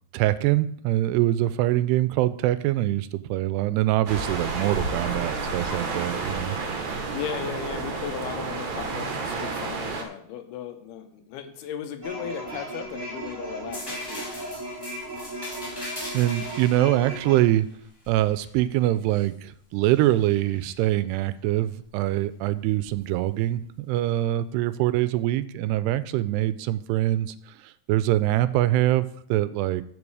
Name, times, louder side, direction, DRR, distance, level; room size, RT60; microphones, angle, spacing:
voice 1, 0.1-6.6 15.7-17.7 18.1-27.3 27.6-29.8, right 14 dB, 85° right, 15 dB, 2.6 m, -24 dB
sound 1, 4.1-10.0, right 4 dB, 65° right, 1.9 m, -30 dB
voice 2, 6.9-14.2, left 9 dB, 80° left, 7 dB, 2.7 m, -36 dB
sound 2, 12.0-17.4, right 1 dB, 10° right, 1.7 m, -36 dB
sound 3, 13.7-19.3 19.8-20.8 22.9-23.1, left 1 dB, 15° left, 3.1 m, -41 dB
13.5 x 5.5 x 4.8 m, 0.65 s
omnidirectional pair, 4.8 m